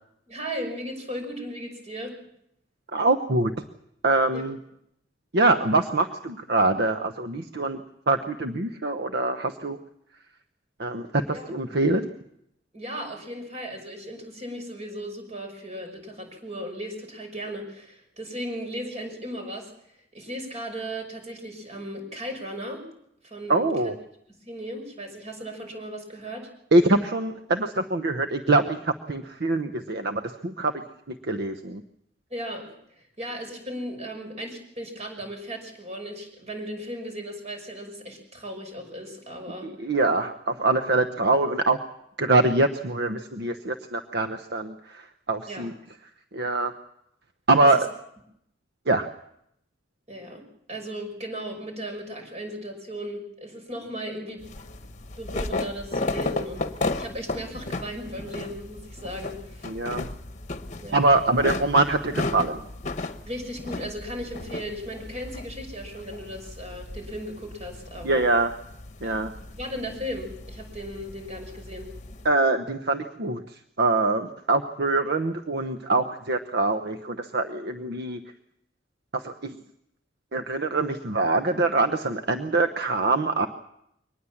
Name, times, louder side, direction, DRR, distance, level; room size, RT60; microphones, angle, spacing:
voice 1, 0.3-2.1 4.3-4.4 11.3-11.5 12.7-19.7 20.1-22.8 23.2-23.9 24.5-26.5 32.3-32.7 33.2-39.7 45.5-45.7 47.6-47.7 50.1-50.4 50.7-54.4 55.2-56.6 57.0-59.8 60.8-61.1 63.2-68.2 69.0-69.2 69.6-71.9, equal, 35° right, 4 dB, 5.9 m, -36 dB
voice 2, 2.9-3.5 4.0-4.6 5.3-7.8 8.1-9.8 10.8-12.1 23.5-23.9 26.7-30.7 31.1-31.8 39.6-41.8 42.2-45.0 45.3-45.7 46.3-46.7 47.5-47.8 48.9-49.1 59.7-60.1 60.9-62.6 68.0-68.5 69.0-69.3 72.2-73.4 73.8-78.2 79.1-79.5 80.3-83.5, right 2 dB, 60° right, 8 dB, 1.0 m, -24 dB
sound 1, 54.4-72.3, left 2 dB, 40° left, 1.1 m, -35 dB
23.5 x 19.5 x 7.2 m, 0.77 s
head